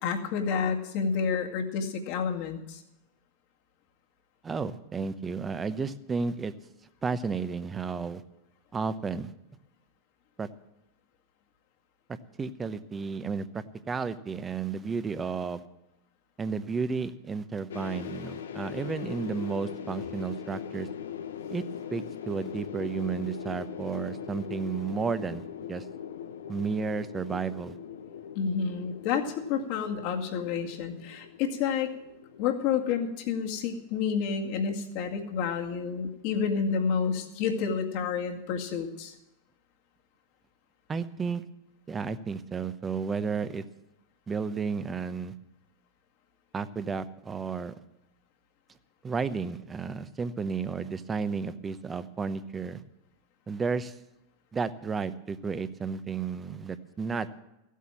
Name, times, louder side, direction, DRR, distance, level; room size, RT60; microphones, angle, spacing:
voice 1, 0.0-2.8 28.4-31.9 32.4-39.1, left 6 dB, 55° left, 3 dB, 2.0 m, -29 dB
voice 2, 4.4-6.5 7.0-8.2 8.7-9.3 10.4-10.5 12.1-15.6 16.4-20.9 21.5-21.6 21.9-25.8 26.5-27.7 40.9-41.4 41.9-43.6 44.3-45.3 46.5-47.7 49.0-52.8 53.5-53.9 54.5-57.4, right 5 dB, 20° right, 14 dB, 0.9 m, -32 dB
sound 1, 17.7-33.8, left 9 dB, 75° left, 0.8 m, -41 dB
15.0 x 8.4 x 7.4 m, 0.90 s
figure-of-eight pair, 90°, 0 cm